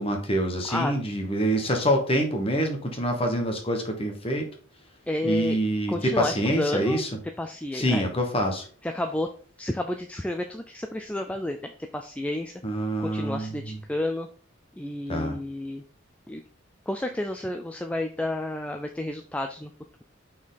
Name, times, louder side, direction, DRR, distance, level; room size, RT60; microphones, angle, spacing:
voice 1, 0.0-4.5 5.2-7.1 7.7-8.6 12.6-13.8 15.1-15.4, equal, 25° left, 3 dB, 1.2 m, -26 dB
voice 2, 5.1-5.6 5.9-7.0 7.4-8.0 8.8-9.3 9.6-12.5 13.0-14.3 14.8-15.8 16.3-16.4 16.9-19.7, left 1 dB, 5° left, 5 dB, 0.3 m, -30 dB
5.9 x 4.4 x 4.0 m, 0.43 s
head